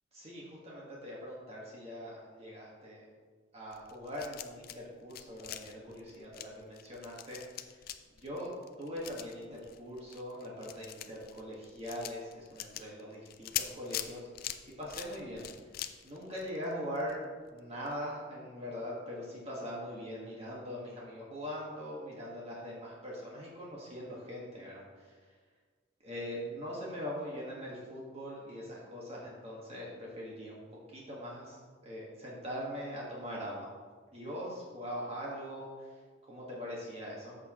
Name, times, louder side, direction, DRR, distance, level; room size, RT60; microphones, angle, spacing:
voice 1, 0.1-3.0 3.5-7.9 8.2-8.5 8.8-14.3 14.8-15.8 16.0-17.2 17.5-25.2 26.0-33.7 34.1-37.4, equal, 30° right, -5 dB, 1.7 m, -42 dB
sound 1, 3.7-4.8 5.0-17.1 17.5-17.6 17.9-18.0, left 11 dB, 50° left, 0.4 m, -43 dB
13.5 x 6.4 x 3.1 m, 1.5 s
head